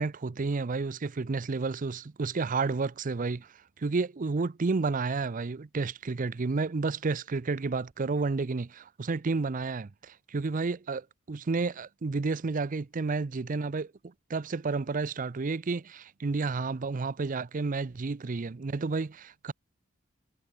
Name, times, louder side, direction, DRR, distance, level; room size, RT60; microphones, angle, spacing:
voice 1, 0.0-13.9 14.3-19.5, right 4 dB, 40° right, 0.5 m, -31 dB
head